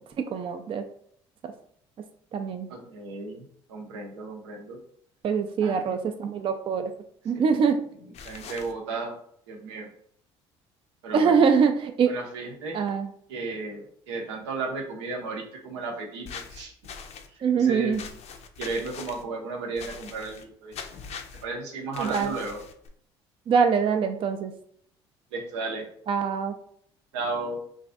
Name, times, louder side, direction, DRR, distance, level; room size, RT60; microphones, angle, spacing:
voice 1, 0.3-0.8 1.4-1.5 2.3-2.7 5.2-6.9 7.3-7.8 11.1-12.1 12.7-13.1 17.4-18.0 22.0-22.3 23.5-24.5 26.1-26.5, right 6 dB, 40° right, 6 dB, 0.4 m, -23 dB
voice 2, 2.7-4.8 5.6-6.1 7.3-7.4 8.2-9.1 9.5-9.9 11.0-11.4 12.1-12.8 13.3-16.7 17.5-17.9 18.6-20.8 21.4-22.6 25.3-25.9 27.1-27.6, right 3 dB, 85° right, 1 dB, 0.6 m, -34 dB
sound 1, 8.1-8.7 16.2-17.3 17.9-19.2 19.8-20.4 20.7-21.4 21.9-22.9, left 6 dB, 50° left, 0.5 m, -41 dB
3.1 x 2.5 x 2.4 m, 0.63 s
hypercardioid pair, 60°, 14 cm